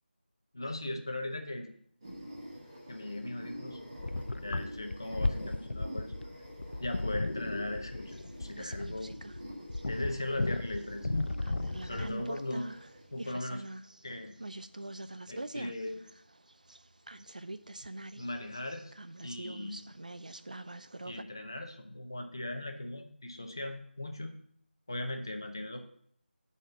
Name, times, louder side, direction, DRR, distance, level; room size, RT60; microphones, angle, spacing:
voice 1, 0.5-1.7 2.9-3.9 4.4-6.1 6.8-9.1 9.9-11.1 11.8-12.7 13.1-13.6 14.0-14.4 15.3-16.0 18.2-18.9 19.2-19.8 21.0-24.3 24.9-25.8, left 1 dB, 25° left, 5 dB, 0.6 m, -38 dB
sound 1, 2.0-13.3, equal, 25° right, 1.7 m, -48 dB
sound 2, 4.0-12.2, left 2 dB, 70° left, 0.5 m, -35 dB
sound 3, 8.1-9.4 9.7-10.9 11.3-21.2, right 2 dB, 45° right, 0.3 m, -45 dB
8.8 x 4.2 x 6.6 m, 0.64 s
figure-of-eight pair, 180°, 6 cm